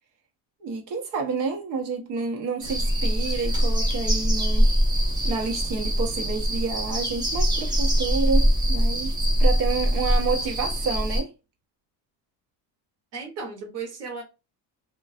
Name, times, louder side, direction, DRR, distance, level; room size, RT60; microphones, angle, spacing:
voice 1, 0.6-4.7 5.2-11.3, right 4 dB, 65° right, 0.8 m, -29 dB
sound 1, 2.6-11.2, equal, 10° right, 0.4 m, -23 dB
voice 2, 13.1-14.2, right 4 dB, 35° right, 0.8 m, -35 dB
2.3 x 2.3 x 2.4 m
cardioid pair, 165°, 44 cm